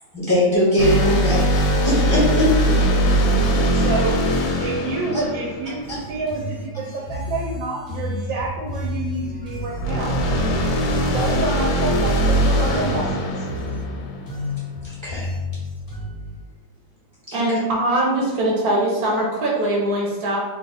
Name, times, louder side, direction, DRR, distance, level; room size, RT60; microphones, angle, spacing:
voice 1, 0.1-1.5 1.8-2.8 5.9-6.0 11.0-11.2 14.8-15.3 17.3-17.6, left 1 dB, 20° right, -9 dB, 0.9 m, -21 dB
sound 1, 0.8-6.3 9.8-14.5, equal, 70° left, 1.0 m, -21 dB
voice 2, 3.7-4.2 4.6-10.1 11.1-13.5, right 3 dB, 80° right, -1 dB, 1.3 m, -28 dB
sound 2, 5.8-16.3, left 1 dB, 35° left, 0.5 m, -31 dB
voice 3, 17.3-20.4, right 1 dB, 60° right, -3 dB, 1.1 m, -21 dB
3.1 x 2.4 x 4.0 m, 1.2 s
omnidirectional pair, 2.1 m